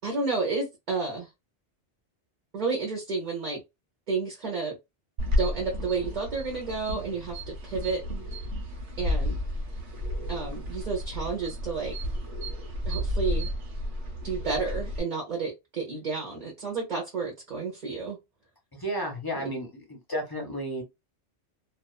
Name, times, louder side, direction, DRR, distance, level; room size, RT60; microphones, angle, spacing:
voice 1, 0.0-1.3 2.5-3.6 4.1-4.8 5.4-8.0 9.0-9.4 10.3-11.9 12.8-13.5 14.2-18.2 19.3-19.5, right 4 dB, 40° right, 0.9 m, -31 dB
sound 1, 5.2-15.0, left 1 dB, 85° right, 1.1 m, -32 dB
voice 2, 18.7-20.8, equal, 20° left, 0.7 m, -33 dB
2.4 x 2.3 x 2.2 m
omnidirectional pair, 1.2 m